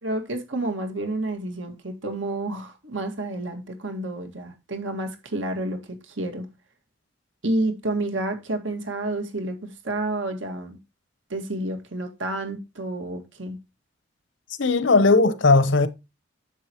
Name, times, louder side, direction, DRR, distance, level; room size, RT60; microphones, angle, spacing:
voice 1, 0.0-5.8 6.0-6.5 7.4-9.6 9.8-10.8 11.3-13.6, right 2 dB, 85° right, 2.1 m, -29 dB
voice 2, 14.6-15.9, left 3 dB, 80° left, 0.9 m, -17 dB
10.5 x 7.7 x 3.0 m
head